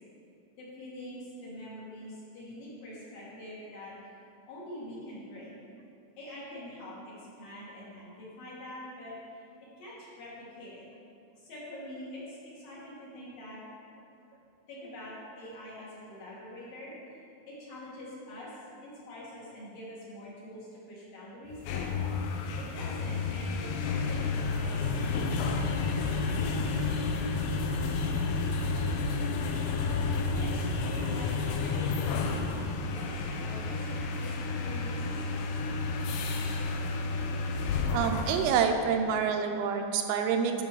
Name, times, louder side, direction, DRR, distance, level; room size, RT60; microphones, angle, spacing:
voice 1, 0.6-3.9 4.5-5.6 6.2-6.9 7.4-9.1 9.8-10.3 10.6-10.8 11.5-12.2 12.6-13.6 14.7-16.9 17.5-18.5 18.8-20.6 20.9-21.9 22.6-26.5 29.8-30.0 30.3-34.3 34.6-35.2 35.7-36.0, left 1 dB, 60° left, -7 dB, 3.6 m, -45 dB
sound 1, 21.5-38.7, left 4 dB, 80° left, 2.3 m, -31 dB
voice 2, 37.9-40.6, right 7 dB, 85° right, 5 dB, 2.5 m, -27 dB
10.5 x 6.4 x 4.7 m, 2.5 s
omnidirectional pair, 4.6 m